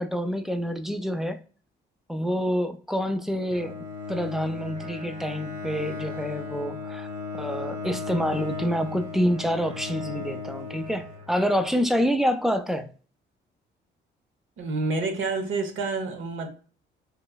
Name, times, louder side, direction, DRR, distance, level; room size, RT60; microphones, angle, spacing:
voice 1, 0.0-1.4 2.1-3.7 4.1-7.1 7.3-12.9, equal, ahead, 0.4 m, -27 dB
Bowed string instrument, 3.5-11.7, left 4 dB, 40° right, 1.0 m, -36 dB
voice 2, 14.6-16.5, right 3 dB, 85° right, 0.9 m, -28 dB
3.8 x 3.1 x 2.2 m
cardioid pair, 90°, 20 cm